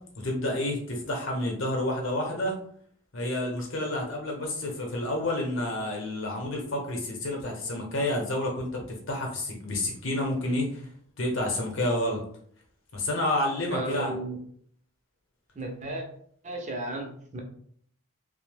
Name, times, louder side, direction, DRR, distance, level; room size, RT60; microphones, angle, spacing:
voice 1, 0.2-2.6 3.1-10.8 11.2-12.2 12.9-14.1, left 1 dB, 55° left, 0 dB, 0.8 m, -29 dB
voice 2, 13.7-14.4 15.6-16.1 16.4-17.4, right 2 dB, 30° right, 2 dB, 0.5 m, -34 dB
2.7 x 2.0 x 3.3 m, 0.62 s
head